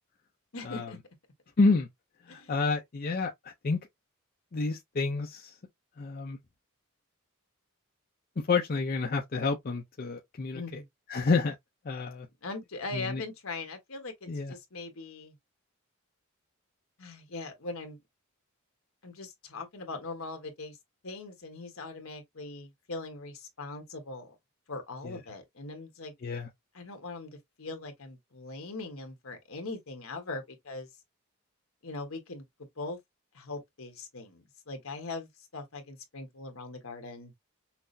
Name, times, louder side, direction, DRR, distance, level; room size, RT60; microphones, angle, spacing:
voice 1, 0.5-1.0 2.3-2.5 10.5-10.9 12.4-15.3 17.0-18.0 19.0-20.8 21.0-24.4 24.7-26.1 26.7-30.9 31.8-32.4 32.8-33.0 33.3-37.3, left 3 dB, 70° left, 1.2 m, -41 dB
voice 2, 1.6-1.9 2.2-3.8 4.5-5.6 6.0-6.4 8.4-10.8 11.1-11.6 11.8-12.3 12.9-13.2 14.3-14.5 25.0-25.2 26.2-26.5, left 4 dB, 40° left, 0.5 m, -29 dB
5.8 x 2.0 x 2.6 m
head